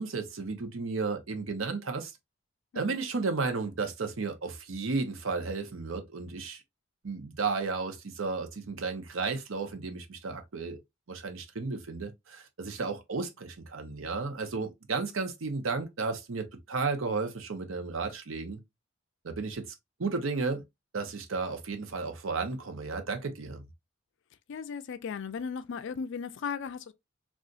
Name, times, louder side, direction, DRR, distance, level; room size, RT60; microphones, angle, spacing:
voice 1, 0.0-2.1 2.7-6.6 7.0-10.8 11.1-18.6 19.2-19.7 20.0-20.6 20.9-23.6, right 4 dB, 75° right, 0.7 m, -33 dB
voice 2, 24.5-26.9, left 6 dB, 65° left, 0.4 m, -36 dB
3.9 x 2.4 x 2.3 m
head